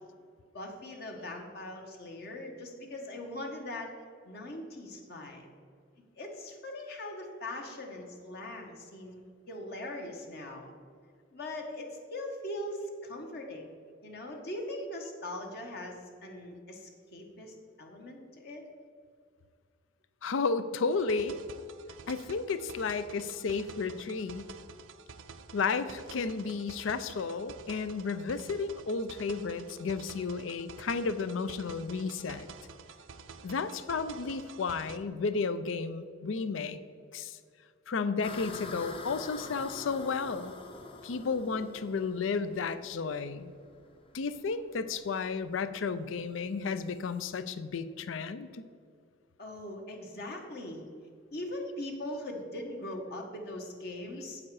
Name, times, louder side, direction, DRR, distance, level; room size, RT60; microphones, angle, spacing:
voice 1, 0.5-3.9 4.2-5.5 6.2-10.7 11.3-13.7 14.0-18.6 49.4-50.9 51.3-54.4, left 1 dB, 55° left, 1 dB, 1.2 m, -41 dB
voice 2, 20.2-21.4 22.1-24.5 25.5-32.5 33.4-36.8 37.1-37.4 37.9-40.5 41.0-43.5 44.1-48.6, left 4 dB, 80° left, 13 dB, 0.5 m, -33 dB
sound 1, 20.9-35.0, right 5 dB, 75° right, 0.5 m, -50 dB
sound 2, 38.2-47.4, left 3 dB, 30° left, 0.7 m, -47 dB
8.5 x 7.3 x 4.8 m, 2.2 s
head